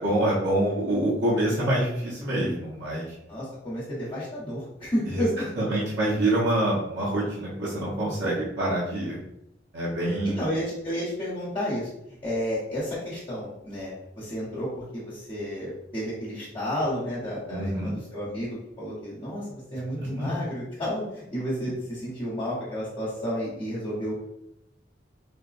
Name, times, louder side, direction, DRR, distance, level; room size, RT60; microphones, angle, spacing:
voice 1, 0.0-3.1 5.1-5.2 5.6-9.2 9.7-10.4 17.5-17.9 20.0-20.3, right 1 dB, 75° right, -7 dB, 0.9 m, -26 dB
voice 2, 3.3-5.3 10.0-11.9 12.2-24.1, equal, 30° left, -10 dB, 1.1 m, -31 dB
4.3 x 2.2 x 2.5 m, 0.82 s
head